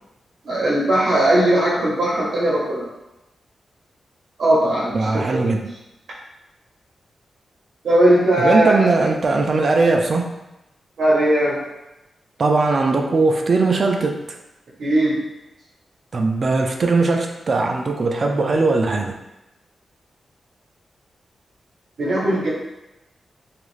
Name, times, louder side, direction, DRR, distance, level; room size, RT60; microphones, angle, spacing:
voice 1, 0.4-2.9 4.4-5.1 7.8-8.8 11.0-11.7 14.8-15.2 22.0-22.5, right 1 dB, 75° right, -6 dB, 0.7 m, -18 dB
voice 2, 4.9-5.7 8.4-10.3 12.4-14.4 16.1-19.2, right 3 dB, 50° right, 3 dB, 0.3 m, -19 dB
2.6 x 2.4 x 3.1 m, 0.95 s
wide cardioid pair, 95°, 0 cm